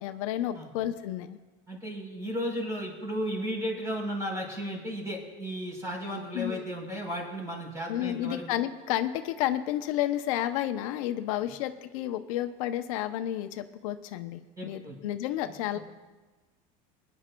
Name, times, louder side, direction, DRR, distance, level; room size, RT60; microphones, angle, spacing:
voice 1, 0.0-1.4 6.3-6.7 7.9-15.8, left 12 dB, 85° left, 9 dB, 0.6 m, -31 dB
voice 2, 1.7-8.4 11.4-11.5 14.6-15.0, equal, 20° right, -1 dB, 4.1 m, -34 dB
24.0 x 10.0 x 2.3 m, 1.2 s
supercardioid pair, 135°, 17 cm